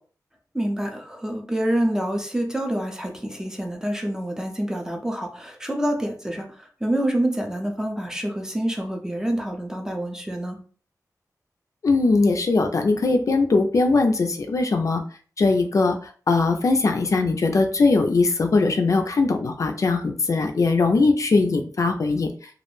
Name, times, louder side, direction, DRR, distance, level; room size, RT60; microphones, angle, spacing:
voice 1, 0.5-10.6, right 1 dB, 10° right, 3 dB, 0.5 m, -27 dB
voice 2, 11.8-15.0 15.4-16.0 16.3-22.3, left 3 dB, 55° left, 5 dB, 0.3 m, -20 dB
2.3 x 2.0 x 3.0 m, 0.42 s
wide cardioid pair, 105°, 7 cm